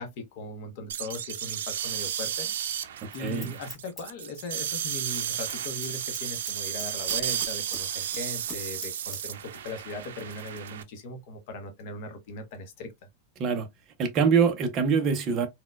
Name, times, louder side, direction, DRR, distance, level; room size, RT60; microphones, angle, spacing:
voice 1, 0.0-2.5 3.1-12.9, left 2 dB, 45° left, 0.7 m, -39 dB
sound 1, 0.9-10.8, right 10 dB, 85° right, 0.4 m, -33 dB
Scissors, 2.8-4.8 5.0-5.3 5.5-7.8 8.1-9.2 9.5-9.6, left 1 dB, 5° left, 0.8 m, -42 dB
voice 2, 3.2-3.6 13.4-13.7 14.0-15.5, right 6 dB, 25° right, 0.6 m, -24 dB
4.1 x 2.2 x 2.2 m
supercardioid pair, 170°, 0 cm